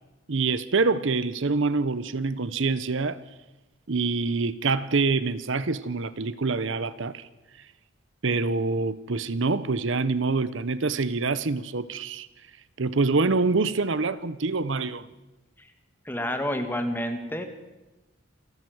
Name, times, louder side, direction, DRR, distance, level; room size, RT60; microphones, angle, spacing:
voice 1, 0.3-3.2 3.9-7.3 7.6-7.7 8.2-12.3 12.8-15.1, right 3 dB, 65° right, 0.8 m, -26 dB
voice 2, 16.1-17.4, equal, 10° left, 1.8 m, -29 dB
28.0 x 12.0 x 7.9 m
head